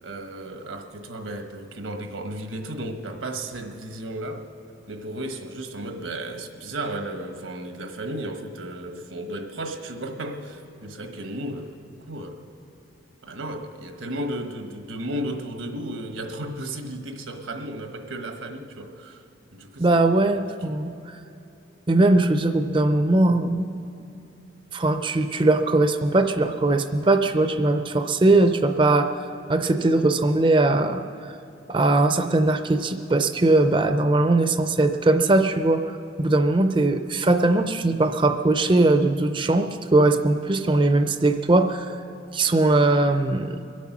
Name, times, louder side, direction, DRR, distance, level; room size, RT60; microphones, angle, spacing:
voice 1, 0.0-4.5 4.9-11.7 12.1-12.5 13.2-19.2 19.5-20.0 20.6-20.7, right 1 dB, 80° right, 5 dB, 1.2 m, -34 dB
voice 2, 19.8-21.2 21.9-23.7 24.7-29.1 29.5-31.4 31.7-42.0 42.3-43.7, right 2 dB, 25° right, 8 dB, 0.4 m, -20 dB
23.0 x 8.4 x 6.0 m, 2.7 s
head